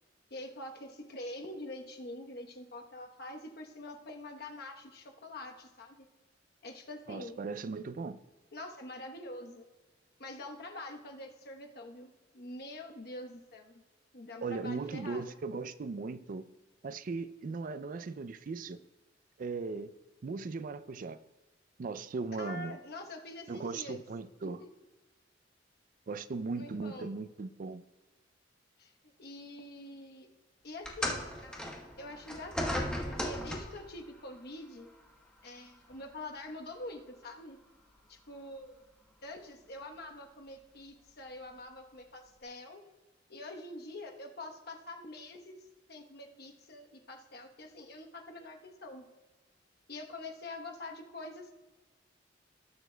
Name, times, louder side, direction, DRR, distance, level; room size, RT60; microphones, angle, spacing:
voice 1, 0.3-6.1 6.6-7.4 8.5-9.7 10.2-13.8 14.1-15.2 22.4-24.0 24.4-24.7 26.5-27.1 28.8-28.9 29.2-30.3 30.6-31.6 32.0-34.9 35.4-37.6 38.1-38.8 39.2-42.8 43.3-45.6 45.9-49.0 49.9-51.5, left 2 dB, 55° left, 1.0 m, -45 dB
voice 2, 7.1-8.2 14.4-16.5 16.8-18.8 19.4-19.9 20.2-21.2 21.8-22.8 23.5-24.6 26.1-27.8, right 4 dB, 45° right, 0.4 m, -38 dB
sound 1, 30.8-33.9 34.9-35.1 35.9-36.0, equal, 5° left, 1.0 m, -36 dB
18.5 x 7.0 x 2.2 m
head